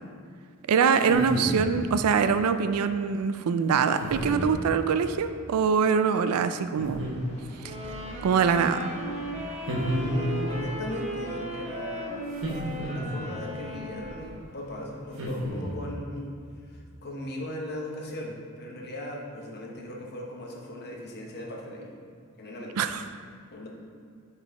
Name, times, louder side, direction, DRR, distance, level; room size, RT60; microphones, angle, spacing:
voice 1, 0.7-7.0 8.2-8.9 22.8-23.0, right 6 dB, 85° right, 10 dB, 0.4 m, -24 dB
sound 1, 1.0-1.8 4.0-4.6 6.8-7.6 9.7-10.5 12.3-13.3 15.2-15.9, equal, 60° right, 1.2 m, -31 dB
sound 2, 6.8-15.0, equal, 30° left, 1.4 m, -46 dB
Wind instrument woodwind instrument, 7.6-14.5, equal, 30° right, 0.9 m, -37 dB
voice 2, 9.8-12.3 12.6-16.3 16.7-21.9 22.4-22.9 23.5-23.7, left 1 dB, 50° left, -1 dB, 1.0 m, -38 dB
5.5 x 4.1 x 4.8 m, 2.3 s
head